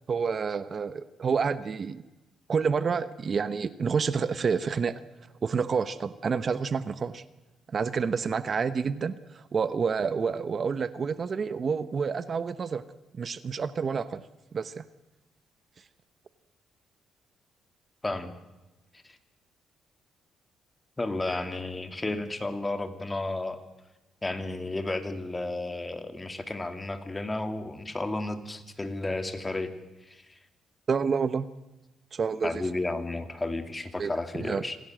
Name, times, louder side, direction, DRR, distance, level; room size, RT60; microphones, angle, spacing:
voice 1, 0.1-2.0 2.5-5.0 5.4-7.2 7.7-12.8 13.1-14.2 14.5-14.8 30.9-31.5 32.1-32.7 34.0-34.6, right 5 dB, 45° right, 15 dB, 1.0 m, -29 dB
voice 2, 21.0-23.6 24.2-29.7 30.1-30.2 32.4-34.8, left 2 dB, 20° left, 9 dB, 2.5 m, -32 dB
26.5 x 16.5 x 7.7 m, 1.0 s
cardioid pair, 90°, 0 cm